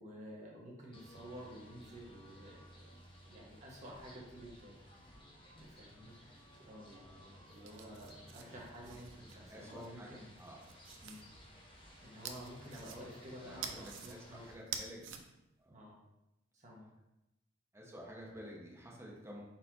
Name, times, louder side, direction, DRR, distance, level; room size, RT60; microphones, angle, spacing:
voice 1, 0.0-3.0 3.2-4.8 5.5-10.3 11.0-11.3 11.7-14.4 15.7-16.0 16.5-16.9, equal, 40° right, -4 dB, 1.2 m, -51 dB
sound 1, 0.9-14.5, equal, 25° left, 0.8 m, -58 dB
sound 2, 7.5-9.9 10.4-11.2 12.3-13.3 13.6-14.1 14.6-15.2, right 7 dB, 80° right, 0.5 m, -47 dB
voice 2, 9.3-10.6 13.4-15.2 15.6-15.7 17.7-19.4, equal, 15° right, -3 dB, 1.0 m, -51 dB
4.2 x 4.2 x 2.9 m, 0.91 s
head